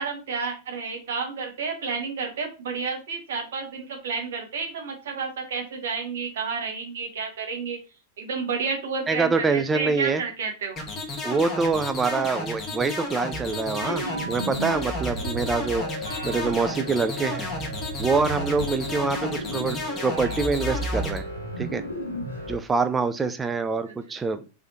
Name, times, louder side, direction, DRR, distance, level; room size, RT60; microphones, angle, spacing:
voice 1, 0.0-7.8 8.2-10.8 19.5-19.8, right 5 dB, 60° right, 3 dB, 1.0 m, -31 dB
voice 2, 9.1-10.2 11.2-17.5 18.0-19.8 20.0-21.3 21.6-21.8 22.5-24.5, right 4 dB, 15° right, 10 dB, 0.3 m, -25 dB
sound 1, 10.8-21.2, left 2 dB, 20° left, 1.2 m, -32 dB
sound 2, 13.3-22.6, right 1 dB, 85° right, 1.0 m, -33 dB
3.4 x 3.3 x 2.7 m, 0.31 s
figure-of-eight pair, 90°, 0 cm